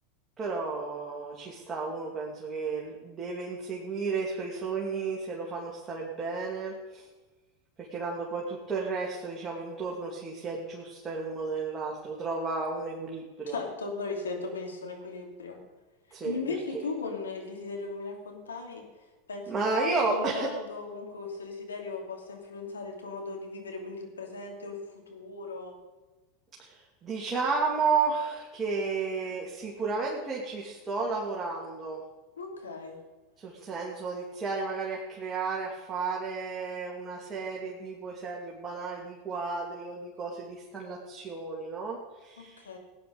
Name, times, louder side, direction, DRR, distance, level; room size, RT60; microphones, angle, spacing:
voice 1, 0.4-7.0 7.9-13.6 16.1-16.4 16.7-16.8 19.5-20.5 26.6-32.0 33.4-42.8, right 4 dB, 25° right, -3 dB, 2.8 m, -33 dB
voice 2, 13.5-15.6 16.2-18.8 19.3-24.8 25.1-25.8 32.4-33.0 42.4-42.8, left 4 dB, 85° left, 1 dB, 2.9 m, -37 dB
18.0 x 10.0 x 5.3 m, 1.2 s
hypercardioid pair, 90°, 0 cm